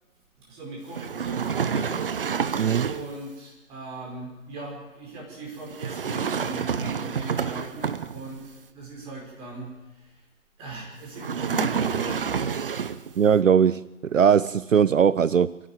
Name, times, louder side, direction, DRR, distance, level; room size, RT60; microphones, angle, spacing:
voice 1, 0.4-2.4 2.8-10.1 10.6-12.5, right 2 dB, 15° right, 4.8 m, -39 dB
sound 1, 0.9-3.2 5.7-8.4 11.2-13.1, right 6 dB, 40° right, 0.9 m, -28 dB
voice 2, 2.6-2.9 13.2-15.6, right 7 dB, 70° right, 0.6 m, -20 dB
25.5 x 11.5 x 9.3 m
figure-of-eight pair, 145°, 41 cm